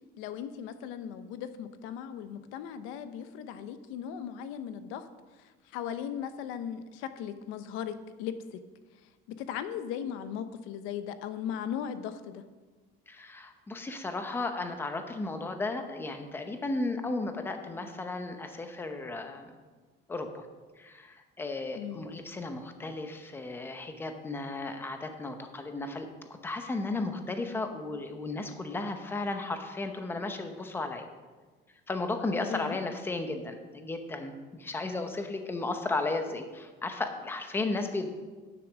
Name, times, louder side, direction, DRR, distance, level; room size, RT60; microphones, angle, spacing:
voice 1, 0.2-5.1 5.4-8.6 9.3-12.4 21.7-22.1 32.5-32.8, left 9 dB, 80° left, 11 dB, 0.8 m, -38 dB
voice 2, 13.1-19.5 20.1-20.5 20.8-26.1 26.4-31.1 31.9-34.3 34.6-38.1, left 2 dB, 10° left, 6 dB, 0.7 m, -34 dB
9.8 x 6.9 x 6.2 m, 1.3 s
cardioid pair, 175°, 21 cm